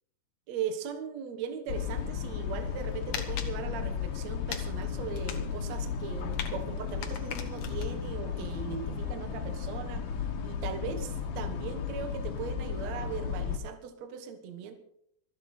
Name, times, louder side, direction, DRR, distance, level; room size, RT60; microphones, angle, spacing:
voice 1, 0.5-10.1 10.4-14.7, right 7 dB, 60° right, 7 dB, 1.8 m, -39 dB
sound 1, 1.7-13.6, left 7 dB, 60° left, 2.6 m, -34 dB
sound 2, 2.6-3.5 4.5-4.8 5.1-7.9, left 8 dB, 80° left, 1.5 m, -40 dB
sound 3, 6.9-11.8, right 8 dB, 85° right, 3.6 m, -51 dB
26.0 x 9.0 x 4.3 m, 0.74 s
omnidirectional pair, 5.1 m